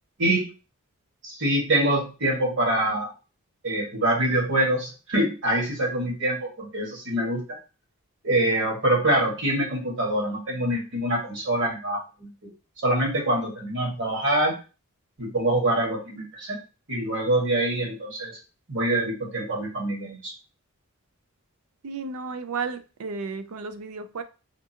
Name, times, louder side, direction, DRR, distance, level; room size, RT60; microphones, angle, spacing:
voice 1, 0.2-0.5 1.2-3.1 3.6-7.6 8.2-12.5 12.8-14.5 15.2-16.6 16.9-18.4 18.7-20.3, right 1 dB, 60° right, -1 dB, 1.5 m, -25 dB
voice 2, 21.8-24.2, right 4 dB, 85° right, 11 dB, 0.4 m, -33 dB
3.6 x 2.4 x 2.8 m, 0.32 s
head